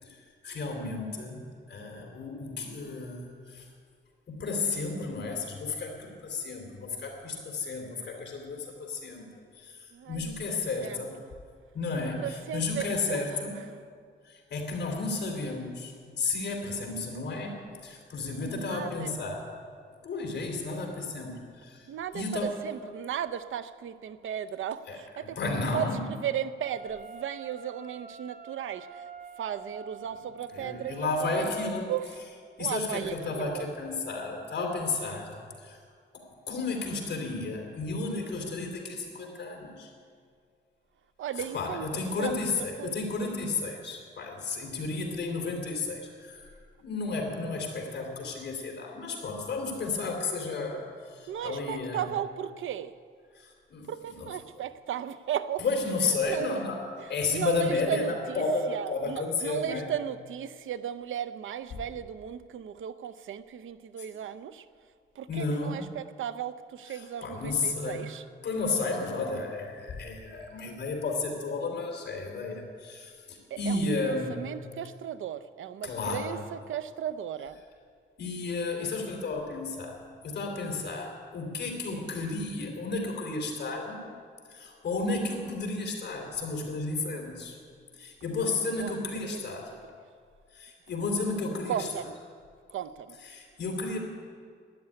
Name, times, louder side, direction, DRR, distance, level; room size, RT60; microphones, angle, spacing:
voice 1, 0.0-3.7 4.3-11.1 11.7-13.5 14.2-19.4 20.0-21.9 22.1-22.6 24.9-26.0 30.5-31.9 32.6-35.8 36.1-39.9 41.3-46.5 46.8-52.0 53.3-53.9 54.2-54.3 55.6-56.8 57.1-59.9 65.3-65.9 66.9-68.1 68.4-74.5 75.8-76.3 78.2-84.0 84.5-87.6 87.9-89.7 90.5-91.9 93.2-94.0, left 3 dB, 60° left, 1 dB, 3.3 m, -33 dB
voice 2, 9.9-11.0 12.2-13.4 18.4-19.1 21.9-29.1 29.4-31.1 31.4-31.5 31.9-32.1 32.6-33.7 41.2-41.9 42.2-42.4 42.8-43.0 51.3-52.9 53.9-55.6 56.1-56.6 57.0-64.7 65.1-68.2 73.5-77.6 88.8-89.0 89.2-89.6 91.7-92.2 92.7-93.2, right 9 dB, 90° right, 14 dB, 0.7 m, -36 dB
Wind instrument woodwind instrument, 26.6-31.8, right 4 dB, 40° right, 0.9 m, -47 dB
13.0 x 9.7 x 9.8 m, 2.1 s
wide cardioid pair, 150°, 20 cm